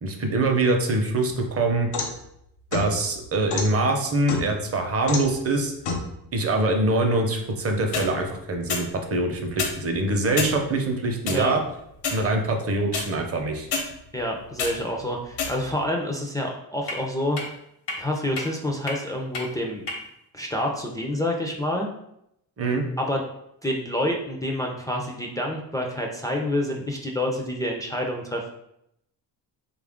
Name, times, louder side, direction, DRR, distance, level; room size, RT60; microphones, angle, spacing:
voice 1, 0.0-1.9 2.7-5.7 6.3-11.6 12.1-13.7 22.6-22.8, right 2 dB, 35° right, 3 dB, 0.7 m, -24 dB
sound 1, 1.3-2.2 2.7-3.7 4.3-4.7 5.1-5.4 5.8-6.1 7.7-8.1 8.7-8.9 9.5-9.8 10.4-10.5 11.3-11.4 12.0-12.2 12.9-13.0 13.7-13.8 14.3-14.7 15.3-15.8 16.9-17.0 17.4-17.5 17.9-18.0 18.4-18.5 18.9-19.0 19.3-19.4 19.9-20.0, left 4 dB, 75° left, 0.9 m, -28 dB
voice 2, 14.1-17.4 18.0-19.8 20.3-21.9 23.0-23.2 23.6-28.5, left 1 dB, 10° left, 0 dB, 0.4 m, -28 dB
3.3 x 2.4 x 3.5 m, 0.78 s
cardioid pair, 95°, 41 cm